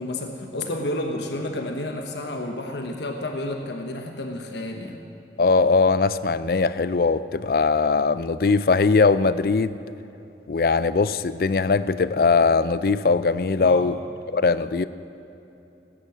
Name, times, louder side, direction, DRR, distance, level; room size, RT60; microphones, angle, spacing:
voice 1, 0.0-5.0 13.6-13.9, left 1 dB, 80° left, 4 dB, 1.2 m, -30 dB
voice 2, 5.4-9.8 10.5-14.0 14.3-14.9, left 4 dB, 55° left, 15 dB, 0.4 m, -20 dB
18.0 x 9.9 x 7.3 m, 2.9 s
head